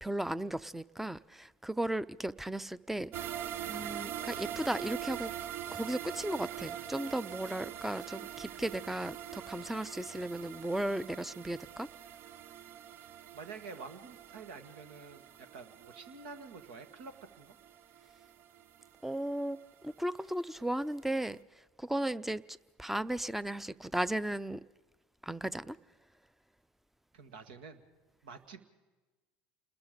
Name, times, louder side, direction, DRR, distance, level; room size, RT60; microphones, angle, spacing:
voice 1, 0.0-3.3 3.7-5.3 5.7-11.9 19.0-21.4 21.8-22.4 22.8-24.6 25.2-25.8, right 1 dB, 5° right, 18 dB, 0.6 m, -35 dB
sound 1, 3.1-20.2 20.5-20.6 21.0-21.1, right 10 dB, 50° right, 0.7 m, -44 dB
voice 2, 12.9-17.5 27.1-27.8 28.2-28.6, right 4 dB, 75° right, 8 dB, 1.7 m, -49 dB
28.5 x 20.5 x 5.2 m, 1.2 s
hypercardioid pair, 75°, 5 cm